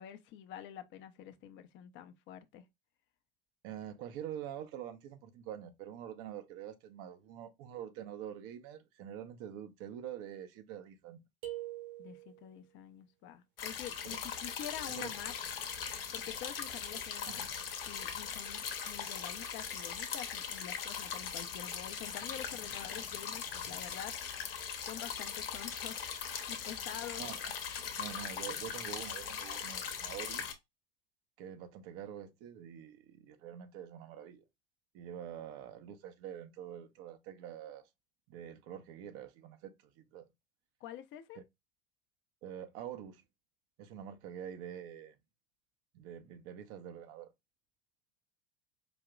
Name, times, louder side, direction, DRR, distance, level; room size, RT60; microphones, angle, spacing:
voice 1, 0.0-2.6 12.0-15.3 16.1-17.4 17.9-24.1 24.9-27.2 40.8-41.4, left 10 dB, 40° left, 0.7 m, -47 dB
voice 2, 3.6-11.2 14.0-14.2 15.0-15.1 17.3-17.5 27.2-27.5 28.0-30.4 31.4-34.4 34.9-37.9 38.3-40.3 42.4-43.2 43.8-45.2 45.9-47.3, right 10 dB, 50° right, 0.8 m, -46 dB
sound 1, 11.4-12.5, right 15 dB, 65° right, 1.9 m, -43 dB
sound 2, 13.6-30.5, left 7 dB, 70° left, 1.0 m, -40 dB
5.1 x 2.8 x 2.3 m
figure-of-eight pair, 75°, 29 cm